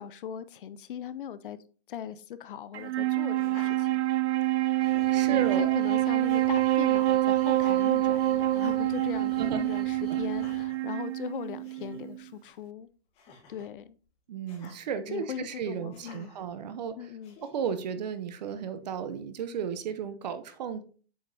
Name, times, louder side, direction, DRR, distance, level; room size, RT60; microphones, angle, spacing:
voice 1, 0.0-1.6 1.9-4.0 5.3-12.9 13.5-14.0 15.1-16.3 17.0-17.4, left 9 dB, 55° left, 0.5 m, -39 dB
Wind instrument woodwind instrument, 2.7-12.2, right 16 dB, 85° right, 0.5 m, -26 dB
Laughter, 3.3-4.4 4.8-5.5 6.3-6.7 7.5-8.7 9.1-9.4 10.2-10.8 11.3-11.4 11.6-12.0 13.1-13.7 14.5-14.8 15.9-16.4 17.2-17.8, left 3 dB, 20° left, 1.2 m, -51 dB
sound 1, 4.8-10.6, left 1 dB, ahead, 1.7 m, -51 dB
voice 2, 5.1-5.7 9.4-9.7 10.1-10.2 14.3-16.9 17.4-20.8, right 7 dB, 40° right, 0.6 m, -34 dB
7.8 x 5.0 x 2.7 m
hypercardioid pair, 170°, 32 cm